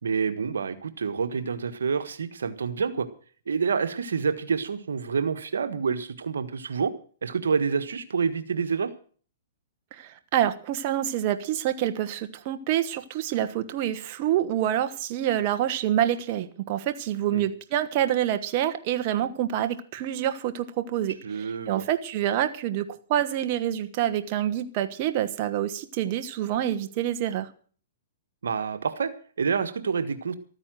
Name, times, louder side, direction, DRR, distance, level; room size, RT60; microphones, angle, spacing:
voice 1, 0.0-3.1 3.5-6.9 7.2-8.9 17.3-17.5 21.2-21.8 28.4-30.3, right 5 dB, 85° right, 11 dB, 1.5 m, -28 dB
voice 2, 9.9-27.5, right 11 dB, 45° right, 9 dB, 1.3 m, -27 dB
13.5 x 9.8 x 7.5 m, 0.43 s
hypercardioid pair, 135°, 0 cm